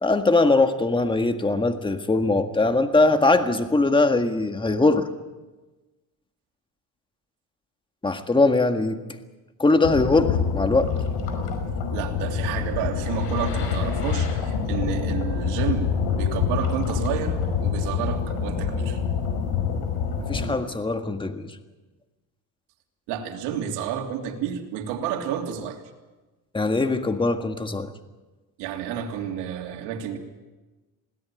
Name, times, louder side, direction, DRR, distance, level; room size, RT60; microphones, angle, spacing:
voice 1, 0.0-5.1 8.0-9.0 9.6-10.9 20.2-21.5 26.5-27.9, left 3 dB, 10° left, 7 dB, 1.8 m, -21 dB
sound 1, 9.8-20.4, left 6 dB, 70° left, 5.6 m, -26 dB
voice 2, 11.9-15.9 16.2-19.0 23.1-25.8 28.6-30.2, right 8 dB, 80° right, 3 dB, 3.2 m, -30 dB
21.0 x 17.5 x 9.1 m, 1.2 s
supercardioid pair, 95°, 40 cm